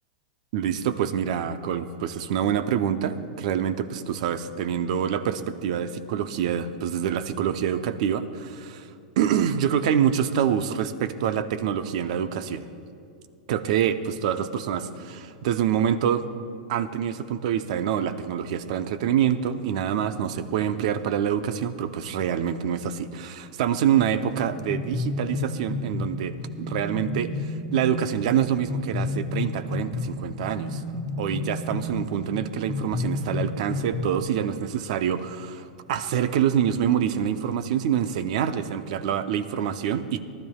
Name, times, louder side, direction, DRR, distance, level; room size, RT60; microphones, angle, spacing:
voice 1, 0.5-8.9 9.2-12.7 13.5-16.3 16.7-30.8 31.2-40.2, right 9 dB, 60° right, 11 dB, 0.7 m, -26 dB
sound 1, 24.2-34.7, left 2 dB, 15° left, 1.9 m, -31 dB
19.0 x 12.5 x 2.4 m, 2.5 s
hypercardioid pair, 125°, 4 cm